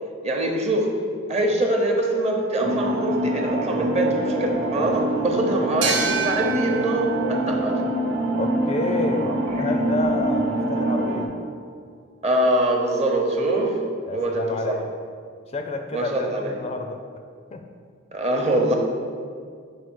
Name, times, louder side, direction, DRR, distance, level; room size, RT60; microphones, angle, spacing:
voice 1, 0.2-0.9 1.3-7.8 9.2-9.3 12.2-13.8 14.1-14.7 15.9-16.5 18.1-18.8, right 1 dB, 35° right, 1 dB, 0.8 m, -23 dB
sound 1, 2.6-11.2, right 1 dB, 85° right, 0.9 m, -25 dB
sound 2, 5.8-9.2, right 6 dB, 65° right, 0.6 m, -30 dB
voice 2, 8.3-11.3 14.1-14.9 15.5-17.0 17.5-17.7, left 3 dB, 30° left, 5 dB, 0.4 m, -29 dB
4.9 x 4.8 x 6.1 m, 2.2 s
head